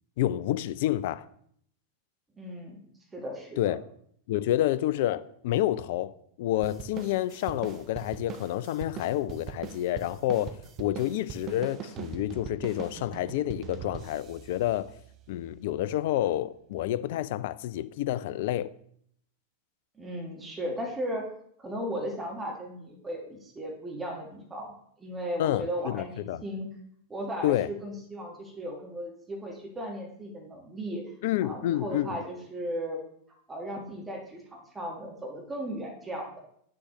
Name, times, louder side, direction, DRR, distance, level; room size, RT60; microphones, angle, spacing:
voice 1, 0.2-1.3 3.6-3.8 4.3-6.1 6.4-14.9 15.3-18.7 25.4-26.4 27.4-27.7 31.2-32.2, left 13 dB, 50° left, 0.3 m, -29 dB
voice 2, 2.4-2.8 3.1-3.8 20.0-21.3 21.6-24.7 25.0-26.7 27.1-31.0 31.4-33.0 33.5-36.4, equal, 10° right, 1.4 m, -36 dB
sound 1, 6.6-15.5, right 9 dB, 30° right, 0.6 m, -42 dB
9.3 x 6.1 x 2.9 m
figure-of-eight pair, 90°, 0 cm